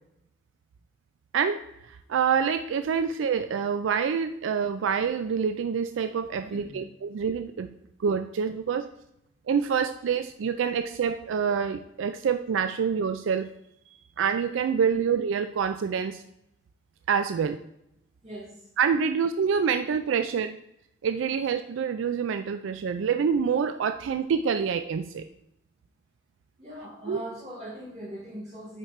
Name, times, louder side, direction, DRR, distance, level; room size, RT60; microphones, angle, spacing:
voice 1, 1.3-6.8 7.1-7.7 8.0-8.9 9.5-13.5 13.9-16.2 17.1-17.6 18.8-20.6 21.0-25.2 27.1-27.2, right 6 dB, 80° right, 9 dB, 0.3 m, -26 dB
voice 2, 6.4-6.8 18.2-18.7 26.6-28.8, equal, 35° right, -5 dB, 2.9 m, -40 dB
8.6 x 5.0 x 3.2 m, 0.79 s
head